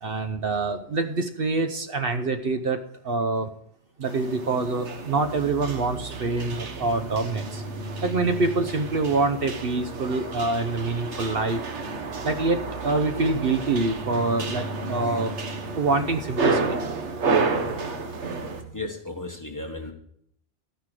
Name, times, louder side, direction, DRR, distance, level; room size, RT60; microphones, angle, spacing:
voice 1, 0.0-3.5 4.0-7.6 8.0-11.6 12.2-15.3 15.7-16.8, right 3 dB, 55° right, 8 dB, 1.1 m, -25 dB
sound 1, 4.0-18.6, right 4 dB, 80° right, 1.5 m, -31 dB
sound 2, 5.0-18.7, right 1 dB, 40° left, 2.6 m, -40 dB
voice 2, 18.7-19.9, left 2 dB, 15° left, 3 dB, 1.4 m, -35 dB
12.5 x 9.7 x 4.9 m, 0.67 s
omnidirectional pair, 1.2 m